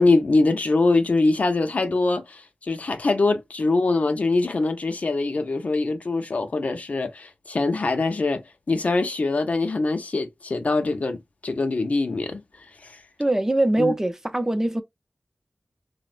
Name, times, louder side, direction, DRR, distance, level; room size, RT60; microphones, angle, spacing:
voice 1, 0.0-12.4 12.8-13.0 13.8-13.9, left 3 dB, 65° left, 0.5 m, -23 dB
voice 2, 13.2-14.8, right 1 dB, 15° right, 0.5 m, -22 dB
3.7 x 2.1 x 2.4 m
wide cardioid pair, 75°, 3 cm